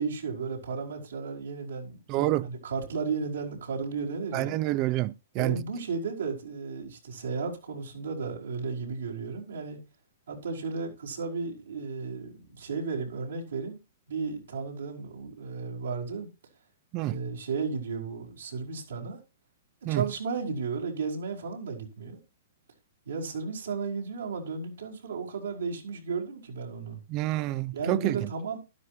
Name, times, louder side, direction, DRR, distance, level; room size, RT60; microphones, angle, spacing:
voice 1, 0.0-4.6 5.4-9.8 10.3-13.8 14.1-16.3 17.0-19.2 19.8-22.2 23.1-27.0 27.7-28.6, right 5 dB, 85° right, 5.1 m, -34 dB
voice 2, 2.1-2.5 4.3-5.6 16.9-17.2 19.9-20.1 27.1-28.3, right 17 dB, 40° right, 0.8 m, -28 dB
12.5 x 12.0 x 2.8 m
hypercardioid pair, 125°, 0 cm